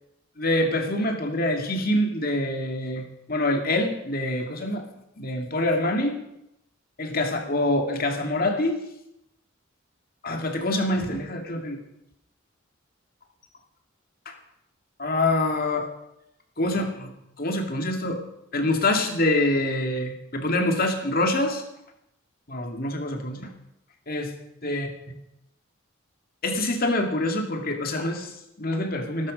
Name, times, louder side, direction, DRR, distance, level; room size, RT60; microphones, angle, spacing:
voice 1, 0.4-4.8 5.2-6.2 7.0-8.8 10.2-11.8 14.3-14.4 15.0-15.9 16.6-17.1 17.4-18.2 18.5-21.6 22.5-23.5 24.1-24.3 24.6-24.9 26.4-29.3, left 1 dB, 45° left, 4 dB, 2.3 m, -25 dB
17.5 x 13.5 x 5.3 m, 0.82 s
head